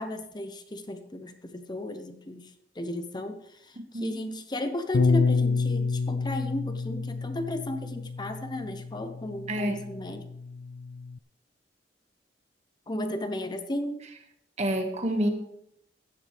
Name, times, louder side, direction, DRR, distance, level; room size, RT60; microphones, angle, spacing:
voice 1, 0.0-10.3 12.9-14.0, left 1 dB, 25° left, 8 dB, 0.7 m, -35 dB
Bass guitar, 4.9-11.2, left 4 dB, 65° left, 0.4 m, -29 dB
voice 2, 14.6-15.3, right 1 dB, 40° right, 3 dB, 1.8 m, -27 dB
16.0 x 10.5 x 3.4 m, 0.78 s
head